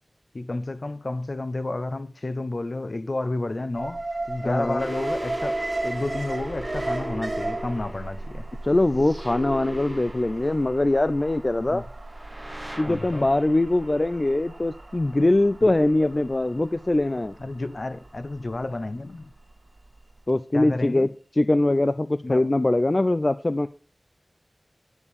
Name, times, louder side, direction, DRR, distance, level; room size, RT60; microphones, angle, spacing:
voice 1, 0.3-4.0 4.3-8.5 11.7-11.9 12.9-13.3 17.4-19.3 20.5-21.1 22.2-22.5, left 2 dB, 60° left, 0.9 m, -31 dB
Alarm, 3.7-19.9 20.2-20.3, right 2 dB, 50° right, 2.2 m, -36 dB
voice 2, 4.4-4.9 8.6-11.8 12.8-17.3 20.3-21.1 21.4-23.7, left 2 dB, 40° left, 0.4 m, -22 dB
sound 1, 4.8-11.0 12.1-14.8, right 1 dB, 15° right, 1.1 m, -38 dB
9.9 x 6.6 x 5.3 m
wide cardioid pair, 45°, 0 cm